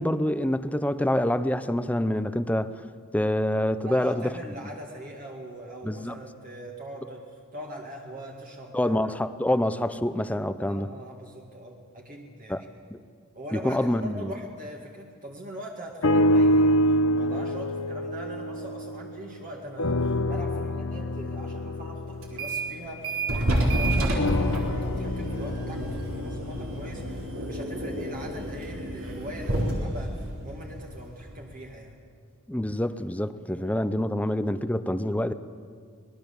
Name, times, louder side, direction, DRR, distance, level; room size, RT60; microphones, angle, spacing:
voice 1, 0.0-2.7 3.1-4.3 5.8-6.2 8.7-10.9 12.5-12.6 12.9-13.0 13.5-14.3 32.5-35.3, left 1 dB, 5° left, 12 dB, 0.7 m, -26 dB
voice 2, 3.8-9.1 10.7-12.7 13.3-32.0 33.5-33.8, right 1 dB, 40° right, -1 dB, 2.2 m, -41 dB
sound 1, 16.0-19.4 19.8-23.5 24.2-28.4 29.0-29.1, equal, 80° left, 0.9 m, -27 dB
sound 2, 22.2-22.7 23.0-31.5, right 1 dB, 70° right, 4.1 m, -29 dB
25.5 x 19.5 x 7.2 m, 2.1 s
head